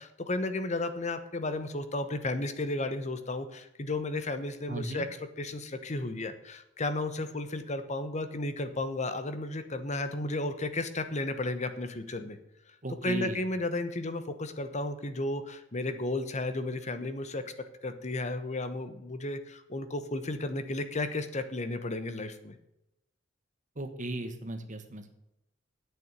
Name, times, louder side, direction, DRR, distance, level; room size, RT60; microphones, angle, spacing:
voice 1, 0.0-5.1 5.4-12.4 13.0-17.4 17.8-22.6, left 2 dB, 40° left, 10 dB, 1.0 m, -33 dB
voice 2, 4.7-5.1 12.8-13.4 23.7-25.2, right 1 dB, 40° right, 7 dB, 1.4 m, -36 dB
9.0 x 7.0 x 8.8 m, 0.88 s
head